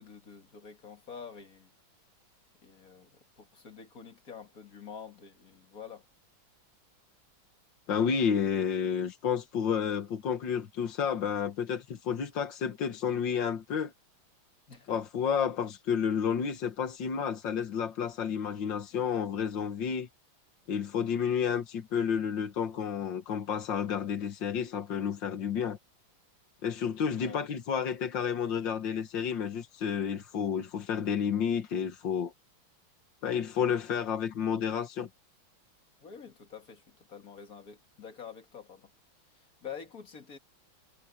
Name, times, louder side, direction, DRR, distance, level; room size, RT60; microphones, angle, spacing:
voice 1, 0.0-1.7 2.6-6.0 14.7-15.0 27.2-27.4 36.0-38.9 39.6-40.4, left 7 dB, 45° left, 2.4 m, -47 dB
voice 2, 7.9-13.9 14.9-20.1 20.7-25.8 26.6-32.3 33.2-35.1, left 7 dB, 65° left, 2.0 m, -31 dB
omnidirectional pair, 2.2 m